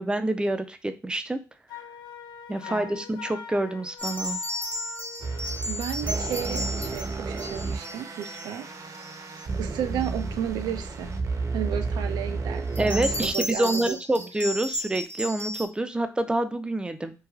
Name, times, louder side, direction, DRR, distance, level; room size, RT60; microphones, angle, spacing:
voice 1, 0.0-1.4 2.5-4.4 12.8-17.1, right 1 dB, 10° right, 9 dB, 0.4 m, -27 dB
Wind instrument woodwind instrument, 1.7-5.6, left 8 dB, 70° left, 0.5 m, -42 dB
voice 2, 2.7-3.0 5.7-8.7 9.6-11.1 11.5-14.0, right 9 dB, 75° right, 8 dB, 0.3 m, -33 dB
sound 1, 4.0-8.5 8.9-9.4 10.0-10.1 12.7-15.7, equal, 20° left, 0.8 m, -34 dB
sound 2, 5.2-13.3, right 4 dB, 50° right, 0.7 m, -32 dB
3.1 x 2.2 x 2.3 m, 0.32 s
supercardioid pair, 50°, 7 cm